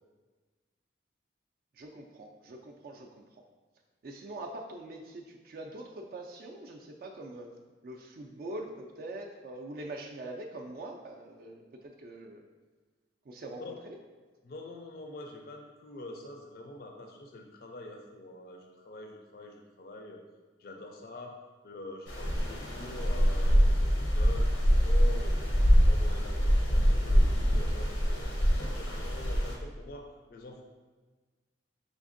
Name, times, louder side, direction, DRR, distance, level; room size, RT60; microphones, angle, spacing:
voice 1, 1.7-3.4 4.0-7.5 7.8-12.5 13.3-14.0, right 2 dB, 50° right, 2 dB, 0.3 m, -43 dB
voice 2, 14.4-20.2 20.6-30.6, left 2 dB, 50° left, 2 dB, 0.4 m, -46 dB
sound 1, 22.1-29.5, equal, 90° left, 0.8 m, -25 dB
5.1 x 3.4 x 2.5 m, 1.4 s
head